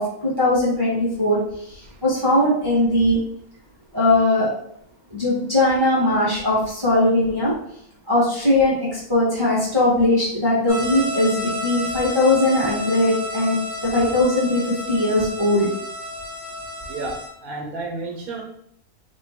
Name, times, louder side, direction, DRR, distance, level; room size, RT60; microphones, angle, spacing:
voice 1, 0.0-3.2 3.9-4.5 5.1-7.5 8.1-13.5 13.8-15.7, left 1 dB, 15° right, -7 dB, 1.1 m, -20 dB
sound 1, 10.7-17.3, left 1 dB, 85° left, 2.2 m, -31 dB
voice 2, 16.9-18.4, right 3 dB, 80° right, 1 dB, 1.2 m, -31 dB
4.2 x 2.9 x 3.5 m, 0.69 s
omnidirectional pair, 1.5 m